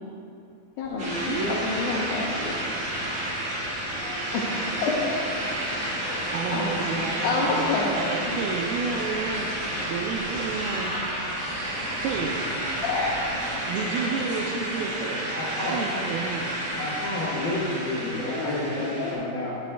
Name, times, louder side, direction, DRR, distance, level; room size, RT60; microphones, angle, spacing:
voice 1, 0.8-2.7 4.3-5.1 5.9-7.9 8.3-8.4 12.8-13.1 18.3-19.1, left 3 dB, 75° left, -3 dB, 1.9 m, -29 dB
sound 1, 0.8-13.7, equal, 30° left, 1.1 m, -45 dB
sound 2, 1.0-19.1, right 1 dB, 35° right, 2.5 m, -31 dB
voice 2, 1.3-1.9 6.3-9.6 9.9-10.9 12.0-12.4 13.7-15.3 15.6-16.7, right 5 dB, 85° right, -1 dB, 2.5 m, -31 dB
sound 3, 4.0-10.8, right 1 dB, 60° right, 2.3 m, -45 dB
voice 3, 15.3-15.8 16.8-19.6, left 1 dB, 50° left, -7 dB, 1.5 m, -30 dB
15.5 x 6.2 x 3.4 m, 2.6 s
omnidirectional pair, 4.3 m